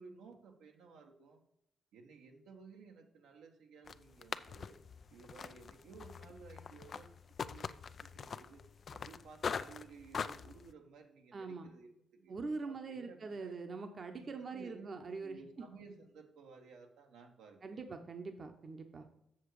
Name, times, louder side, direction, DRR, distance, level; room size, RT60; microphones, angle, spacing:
voice 1, 0.0-1.4 1.9-4.8 5.1-7.1 7.4-8.6 8.9-12.3 12.7-13.5 14.1-14.9 15.2-17.8, right 4 dB, 90° right, 2 dB, 1.3 m, -56 dB
sound 1, 3.9-10.7, left 6 dB, 50° left, 0.4 m, -43 dB
voice 2, 11.3-11.7 12.3-15.6 17.6-19.1, right 4 dB, 45° right, 6 dB, 0.9 m, -43 dB
7.3 x 6.7 x 4.8 m, 0.78 s
cardioid pair, 75°, 0 cm